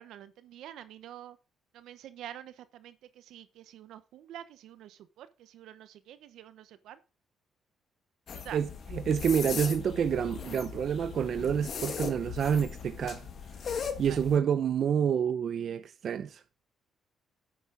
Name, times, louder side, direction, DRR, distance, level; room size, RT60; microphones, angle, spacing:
voice 1, 0.0-1.4 1.7-7.0 8.3-8.6 14.1-14.2, right 11 dB, 80° right, 1.0 m, -47 dB
sound 1, 8.3-14.4, left 6 dB, 55° left, 1.8 m, -38 dB
voice 2, 8.5-13.2 14.0-16.4, right 8 dB, 60° right, 0.7 m, -28 dB
11.5 x 8.4 x 4.0 m
cardioid pair, 90°, 0 cm